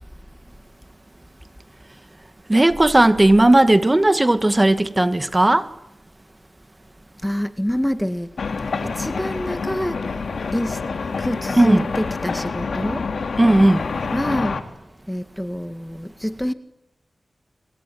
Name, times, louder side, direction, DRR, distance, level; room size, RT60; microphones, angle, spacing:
voice 1, 2.5-5.7 11.5-11.8 13.4-13.9, right 1 dB, 25° right, 2.4 m, -15 dB
voice 2, 7.2-8.3 8.8-10.0 10.5-10.8 11.2-13.1 14.1-14.6 15.1-16.5, equal, 5° left, 1.9 m, -26 dB
sound 1, 8.4-14.6, left 4 dB, 80° left, 3.3 m, -27 dB
27.0 x 23.5 x 9.5 m
cardioid pair, 50°, 0 cm